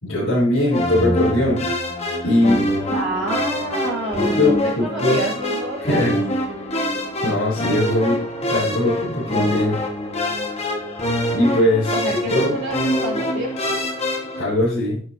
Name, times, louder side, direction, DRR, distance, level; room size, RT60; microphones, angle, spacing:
voice 1, 0.0-1.6 2.2-2.7 4.1-5.2 5.8-6.2 6.7-6.8 7.2-8.2 8.5-9.8 11.3-12.6 14.4-15.0, left 1 dB, 90° left, -8 dB, 3.7 m, -20 dB
sound 1, 0.7-14.4, equal, 30° left, 1.3 m, -24 dB
voice 2, 2.8-6.2 11.9-13.8, right 2 dB, 60° right, -3 dB, 4.0 m, -28 dB
9.2 x 7.4 x 2.8 m, 0.43 s
head